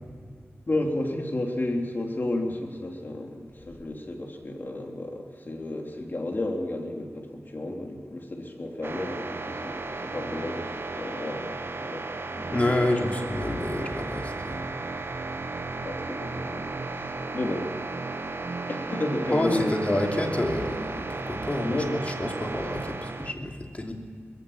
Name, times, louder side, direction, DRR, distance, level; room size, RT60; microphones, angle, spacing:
voice 1, 0.7-12.6 12.9-13.1 15.8-17.7 18.7-20.1 21.6-22.0, left 1 dB, 45° left, 2 dB, 3.2 m, -32 dB
sound 1, 8.8-23.3, right 3 dB, 55° right, 1.0 m, -34 dB
voice 2, 12.5-14.7 19.3-21.8 22.2-23.9, left 1 dB, 30° left, 2 dB, 2.9 m, -28 dB
21.5 x 15.5 x 8.8 m, 2.1 s
wide cardioid pair, 70°, 5 cm